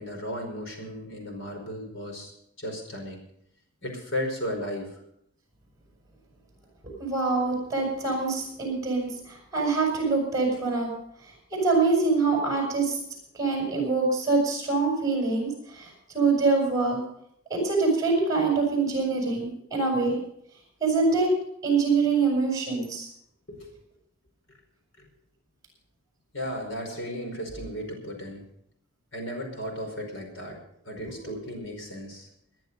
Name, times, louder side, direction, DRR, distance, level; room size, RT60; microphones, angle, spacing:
voice 1, 0.0-2.3 2.6-3.2 3.8-4.9 23.5-23.7 25.0-25.1 26.3-28.4 29.1-30.6 30.8-32.3, equal, 60° left, 3 dB, 5.0 m, -35 dB
voice 2, 6.8-10.9 11.5-13.0 13.3-17.0 17.5-20.2 20.8-21.3 21.6-23.1, right 4 dB, 15° right, 0 dB, 7.0 m, -25 dB
19.5 x 10.5 x 5.4 m, 0.73 s
head